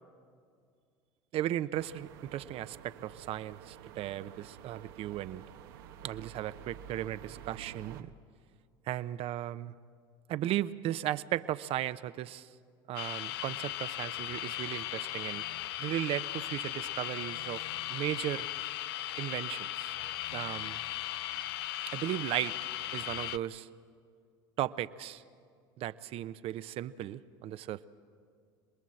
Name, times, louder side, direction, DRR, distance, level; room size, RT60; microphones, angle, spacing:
voice 1, 1.3-5.4 6.0-8.1 8.9-9.7 10.3-12.5 12.9-15.4 15.8-17.6 17.9-18.5 19.2-19.9 20.3-20.8 21.9-22.5 22.9-23.7 24.6-25.2 25.8-27.9, right 13 dB, 55° right, 14 dB, 0.8 m, -36 dB
sound 1, 1.7-8.0, right 9 dB, 80° right, 1.0 m, -50 dB
sound 2, 13.0-23.4, left 14 dB, 85° left, 0.5 m, -37 dB
26.5 x 20.0 x 7.8 m, 2.2 s
supercardioid pair, 90°, 12 cm